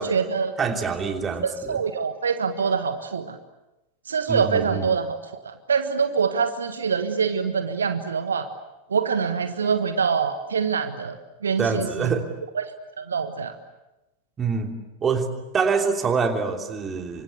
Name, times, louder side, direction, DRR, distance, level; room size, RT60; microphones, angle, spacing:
voice 1, 0.0-0.5 1.4-3.4 4.1-8.5 8.9-11.2 11.4-12.1 12.5-12.7 13.0-13.5, right 6 dB, 70° right, 9 dB, 1.5 m, -25 dB
voice 2, 0.6-1.8 4.3-4.9 11.6-12.3 14.4-14.7 15.0-15.3 15.5-17.2, right 5 dB, 20° right, 5 dB, 3.1 m, -25 dB
28.5 x 25.5 x 8.2 m, 0.98 s
figure-of-eight pair, 90°, 0 cm